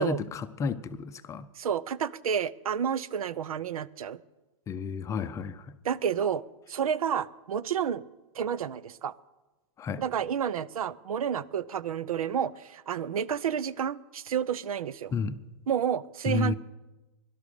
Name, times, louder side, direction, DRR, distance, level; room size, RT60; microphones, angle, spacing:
voice 1, 0.0-1.5 4.7-5.8 9.8-10.0 15.1-15.4 16.3-16.5, left 5 dB, 15° left, 0.5 m, -31 dB
voice 2, 1.6-4.2 5.8-6.4 6.7-8.1 8.3-9.1 10.0-15.1 15.7-16.5, right 8 dB, 85° right, 0.6 m, -30 dB
17.5 x 11.5 x 6.8 m
hypercardioid pair, 135°, 18 cm